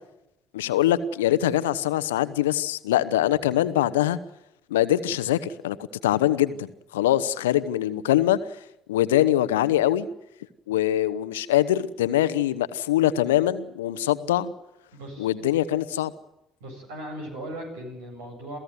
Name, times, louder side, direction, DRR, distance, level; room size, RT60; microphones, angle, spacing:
voice 1, 0.5-4.2 4.7-5.8 6.0-6.7 6.9-8.4 8.9-10.1 10.7-14.5 15.2-16.1, left 13 dB, 70° left, 14 dB, 1.0 m, -23 dB
voice 2, 14.9-15.3 16.6-18.6, right 1 dB, 70° right, 3 dB, 8.0 m, -37 dB
28.0 x 16.5 x 9.5 m, 0.87 s
figure-of-eight pair, 50°, 0 cm